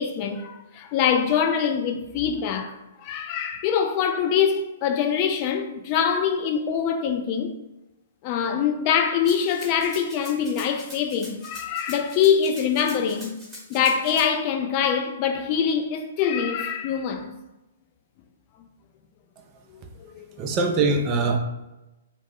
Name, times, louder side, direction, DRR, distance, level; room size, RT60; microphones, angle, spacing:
voice 1, 0.0-7.5 8.2-13.3 13.7-17.3 20.2-20.4, left 7 dB, 40° left, 0.3 m, -24 dB
Rattle (instrument), 9.2-14.3, equal, 10° right, 1.0 m, -43 dB
voice 2, 20.4-21.4, right 3 dB, 30° right, 0.4 m, -22 dB
2.4 x 2.0 x 3.5 m
figure-of-eight pair, 120°, 0 cm